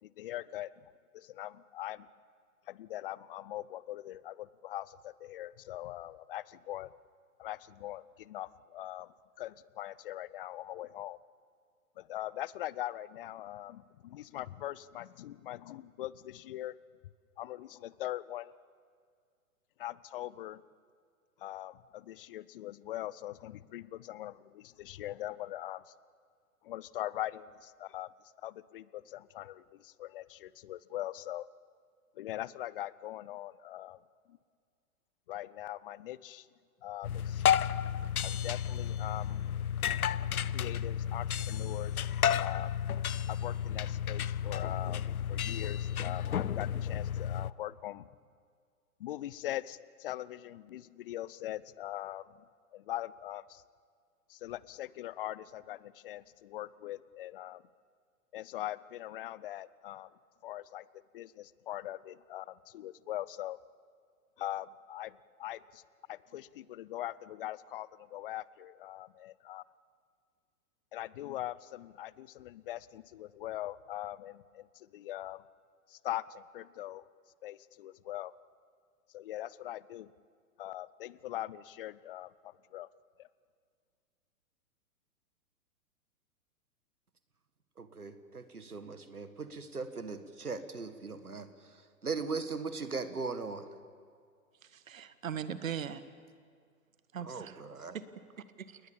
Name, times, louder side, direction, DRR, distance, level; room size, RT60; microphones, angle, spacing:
voice 1, 0.0-2.1 2.7-6.9 7.4-11.2 12.0-16.8 17.4-18.5 19.8-20.6 21.4-25.9 26.6-28.1 28.4-31.5 32.2-34.0 34.3-34.4 35.3-36.5 36.8-37.4 38.2-39.5 40.5-42.1 42.4-42.8 43.3-48.1 49.0-52.4 52.7-53.6 54.3-57.6 58.3-60.1 60.4-60.9 61.1-63.6 64.4-65.8 66.1-69.6 70.9-75.4 75.9-77.1 77.4-78.3 79.1-80.1 80.6-82.9 83.2-83.3, left 14 dB, 40° left, 20 dB, 0.6 m, -42 dB
sound 1, 37.0-47.5, left 9 dB, 80° left, 0.6 m, -32 dB
voice 2, 87.8-93.7 97.2-98.0, right 4 dB, 85° right, 10 dB, 1.9 m, -39 dB
voice 3, 94.6-96.0 97.1-97.6 97.9-98.0 98.4-98.8, right 8 dB, 65° right, 13 dB, 1.6 m, -40 dB
29.0 x 20.5 x 7.2 m, 2.1 s
figure-of-eight pair, 115°, 44 cm